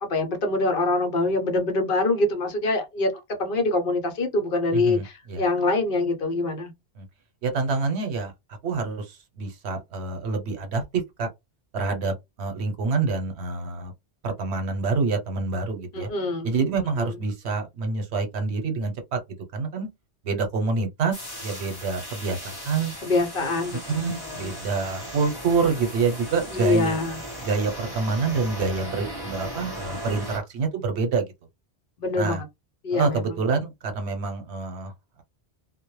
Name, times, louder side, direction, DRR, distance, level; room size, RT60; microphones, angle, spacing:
voice 1, 0.0-3.1 3.4-6.7 15.9-16.5 17.0-17.1 23.0-24.6 26.5-27.2 32.0-32.5 32.8-33.3, left 2 dB, 60° left, 0.8 m, -25 dB
voice 2, 4.7-5.4 7.0-7.1 7.4-8.3 8.6-11.3 11.7-13.9 14.2-16.1 16.4-19.2 19.5-19.9 20.2-22.9 23.9-27.0 27.4-31.3 32.2-32.4 32.9-34.9, right 4 dB, 85° right, 1.0 m, -27 dB
sound 1, 21.1-30.4, equal, 25° left, 0.7 m, -37 dB
2.2 x 2.1 x 3.0 m
omnidirectional pair, 1.1 m